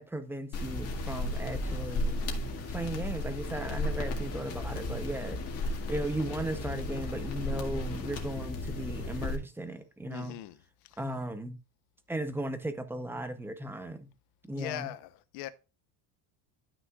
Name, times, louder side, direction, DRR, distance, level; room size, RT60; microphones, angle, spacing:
voice 1, 0.0-2.2 2.7-5.4 5.9-10.4 11.0-11.6 12.1-14.1 14.5-14.9, right 1 dB, 5° right, 0.7 m, -36 dB
sound 1, 0.5-9.4, left 2 dB, 35° left, 2.1 m, -34 dB
voice 2, 10.1-10.6 10.8-11.0 14.5-15.5, left 15 dB, 70° left, 0.9 m, -40 dB
12.5 x 6.1 x 2.4 m
cardioid pair, 160°, 41 cm